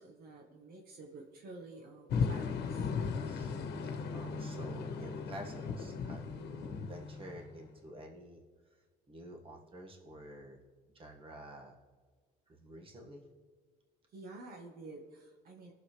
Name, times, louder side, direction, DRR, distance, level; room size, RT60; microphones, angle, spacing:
voice 1, 0.0-2.9 14.1-15.7, right 3 dB, 65° right, 1 dB, 1.5 m, -50 dB
sound 1, 2.1-7.8, left 5 dB, 75° left, 1.1 m, -37 dB
voice 2, 3.2-3.6 4.1-8.4 9.1-10.6 10.9-11.8 12.5-13.3, right 1 dB, 30° right, 1 dB, 1.9 m, -50 dB
20.0 x 6.8 x 3.4 m, 1.5 s
cardioid pair, 110°, 17 cm